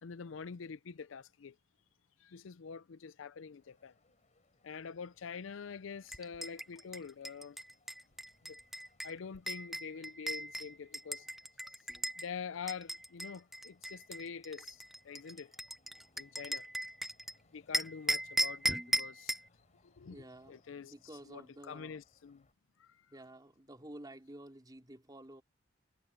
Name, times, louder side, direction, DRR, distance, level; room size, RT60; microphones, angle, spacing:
voice 1, 0.0-1.6 2.2-3.9 4.6-7.6 8.4-8.6 9.0-11.3 12.2-15.5 16.2-16.7 17.5-19.4 19.8-20.9 21.2-22.5 22.8-23.0, left 6 dB, 80° left, 0.5 m, -46 dB
sound 1, 3.5-22.5, left 2 dB, 35° left, 7.0 m, -71 dB
sound 2, 6.1-12.3 12.7-17.3 17.7-19.5, right 1 dB, ahead, 0.5 m, -37 dB
voice 2, 20.1-22.0 23.1-25.4, right 1 dB, 20° right, 3.1 m, -51 dB
head